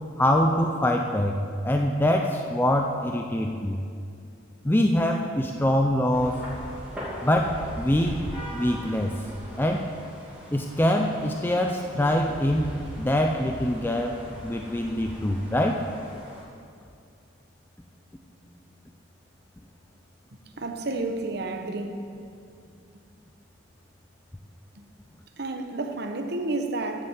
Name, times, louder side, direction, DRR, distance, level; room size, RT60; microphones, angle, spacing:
voice 1, 0.2-1.4 1.6-3.8 4.6-6.4 7.2-8.2 8.5-9.2 9.5-9.9 10.5-14.2 14.4-15.8, left 1 dB, 10° left, 2 dB, 0.5 m, -24 dB
sound 1, 6.1-16.4, equal, 5° right, 2.5 m, -40 dB
voice 2, 20.6-22.1 24.7-24.8 25.4-27.0, right 2 dB, 55° right, 5 dB, 1.0 m, -30 dB
11.0 x 7.5 x 8.0 m, 2.3 s
head